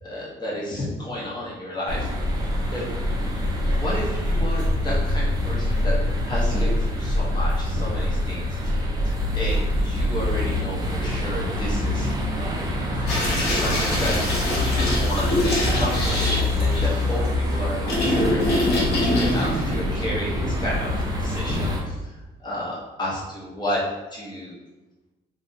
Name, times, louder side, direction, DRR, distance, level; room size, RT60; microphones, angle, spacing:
voice 1, 0.0-2.1 2.7-2.9 3.7-12.1 13.0-23.9 24.1-24.5, equal, 25° left, -6 dB, 0.9 m, -32 dB
sound 1, 1.9-21.8, left 1 dB, 25° right, 0.4 m, -25 dB
sound 2, 13.1-20.7, left 1 dB, 75° left, 0.9 m, -25 dB
2.5 x 2.2 x 2.5 m, 1.1 s
cardioid pair, 110°, 17 cm